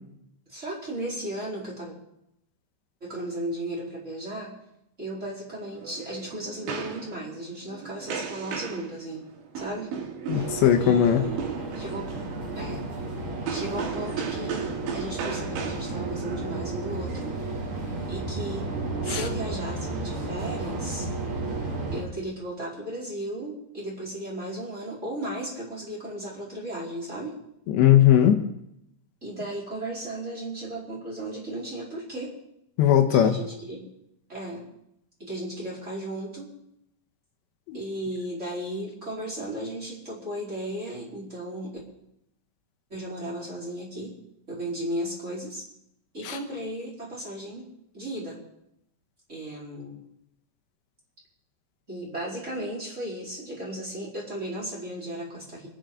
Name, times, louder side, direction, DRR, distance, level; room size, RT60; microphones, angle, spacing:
voice 1, 0.5-1.9 3.0-4.6 5.0-9.3 9.5-9.9 10.3-10.5 10.8-12.1 12.5-12.8 13.5-17.3 18.1-18.7 19.0-21.1 21.9-27.4 29.2-32.3 33.1-33.9 34.3-34.6 35.2-36.5 37.7-41.8 42.9-44.1 44.5-45.6 46.1-47.7 47.9-48.4 49.3-50.0 51.9-55.7, right 1 dB, 15° right, -6 dB, 4.2 m, -35 dB
sound 1, 5.5-18.0, right 7 dB, 80° right, 4.1 m, -37 dB
voice 2, 10.3-11.2 19.1-19.2 27.7-28.4 32.8-33.4 37.7-37.8 46.3-46.4, left 10 dB, 80° left, 4 dB, 3.4 m, -19 dB
sound 2, 10.3-22.0, right 3 dB, 35° right, 3.0 m, -33 dB
26.5 x 11.0 x 3.9 m, 0.81 s
omnidirectional pair, 5.0 m